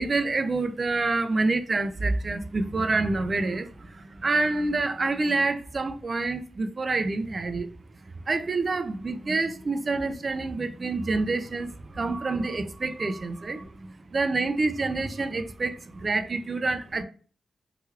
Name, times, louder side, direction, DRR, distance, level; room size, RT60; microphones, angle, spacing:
voice 1, 0.0-7.7 8.0-17.0, right 3 dB, 40° right, 0.4 m, -27 dB
3.1 x 2.9 x 2.3 m
cardioid pair, 95°, 0 cm